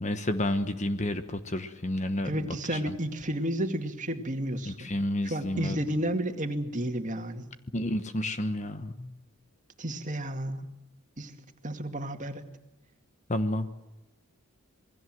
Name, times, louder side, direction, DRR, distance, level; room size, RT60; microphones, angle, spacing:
voice 1, 0.0-2.3 4.7-5.8 7.7-9.1 13.3-13.7, left 1 dB, 30° left, 9 dB, 1.1 m, -30 dB
voice 2, 2.2-4.9 5.2-7.5 9.8-10.7 11.2-12.5, right 1 dB, 35° right, 6 dB, 2.3 m, -32 dB
27.5 x 21.0 x 7.8 m, 0.96 s
head